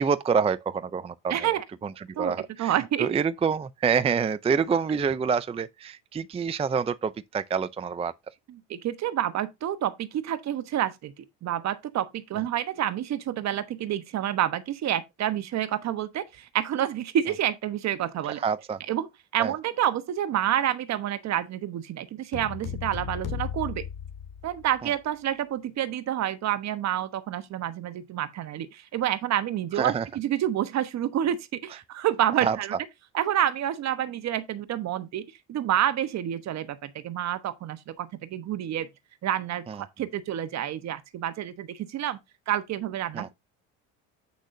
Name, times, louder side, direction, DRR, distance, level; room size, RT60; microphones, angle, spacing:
voice 1, 0.0-1.3 2.2-2.7 3.0-8.1 18.4-18.8 19.4-19.5 29.8-30.0 32.4-32.6 39.7-39.8 43.1-43.3, right 6 dB, 20° right, 0.5 m, -26 dB
voice 2, 1.3-1.6 2.1-3.1 8.5-18.4 18.9-23.8 24.4-32.7 33.1-38.9 39.2-42.2 42.5-43.3, right 11 dB, 55° right, 1.1 m, -28 dB
sound 1, 22.3-24.9, left 8 dB, 65° left, 2.4 m, -35 dB
8.4 x 6.3 x 2.6 m
supercardioid pair, 90°, 33 cm